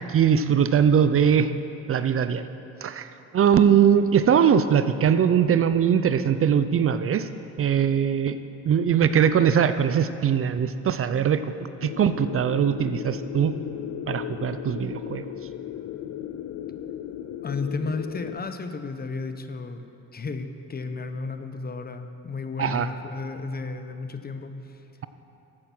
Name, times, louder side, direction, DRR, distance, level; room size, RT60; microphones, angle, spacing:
voice 1, 0.1-1.5 1.9-2.4 2.8-3.1 3.3-7.3 7.6-8.4 8.6-11.4 11.8-13.5 14.1-15.2 22.6-22.9, right 8 dB, 45° right, 12 dB, 0.5 m, -21 dB
sound 1, 11.8-18.4, left 10 dB, 60° left, 0.5 m, -36 dB
voice 2, 17.4-19.9 20.1-24.8, left 3 dB, 30° left, 8 dB, 0.8 m, -33 dB
14.0 x 8.6 x 6.2 m, 2.8 s
cardioid pair, 90°, 30 cm